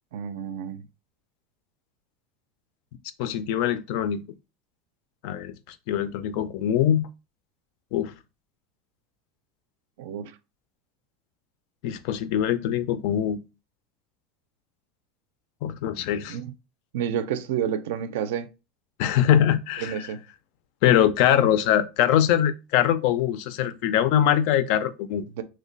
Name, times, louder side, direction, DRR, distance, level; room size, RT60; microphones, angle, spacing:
voice 1, 0.1-0.8 10.0-10.3 16.3-16.5 16.9-18.5 19.8-20.2 25.4-25.5, right 9 dB, 80° right, 0.4 m, -29 dB
voice 2, 3.2-4.2 5.2-5.5 5.9-7.1 7.9-8.1 11.8-13.4 15.6-16.4 19.0-20.0 20.8-25.2, left 10 dB, 50° left, 0.3 m, -22 dB
3.1 x 2.1 x 3.8 m
supercardioid pair, 180°, 0 cm